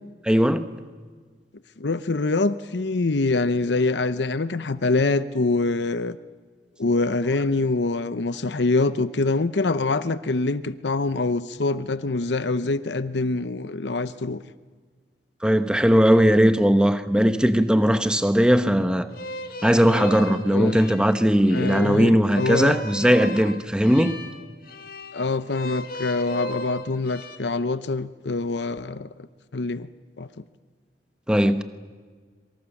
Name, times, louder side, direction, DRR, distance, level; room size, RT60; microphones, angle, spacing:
voice 1, 0.2-0.6 15.4-19.1 19.6-24.2 31.3-31.6, equal, 5° right, 10 dB, 0.9 m, -19 dB
voice 2, 1.8-6.2 6.8-14.4 20.5-20.8 21.5-22.8 25.1-29.1 29.5-29.9 30.2-30.3, left 3 dB, 80° left, 13 dB, 0.8 m, -25 dB
sound 1, 19.1-27.4, left 1 dB, 55° left, 1.7 m, -36 dB
26.0 x 24.0 x 7.2 m, 1.5 s
head